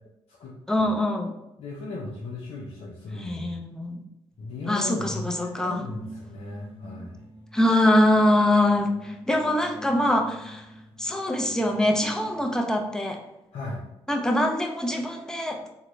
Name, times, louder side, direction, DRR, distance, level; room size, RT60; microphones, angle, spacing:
voice 1, 0.7-1.3 3.1-4.0 4.7-5.8 7.5-10.7 11.0-13.2 14.1-15.6, left 1 dB, 5° left, 2 dB, 0.6 m, -23 dB
voice 2, 1.6-3.6 4.4-7.2 13.5-13.8, left 3 dB, 70° left, -4 dB, 0.7 m, -36 dB
sound 1, 4.3-12.9, equal, 55° right, 0.9 m, -45 dB
3.7 x 2.2 x 3.0 m, 0.91 s
supercardioid pair, 55°, 11 cm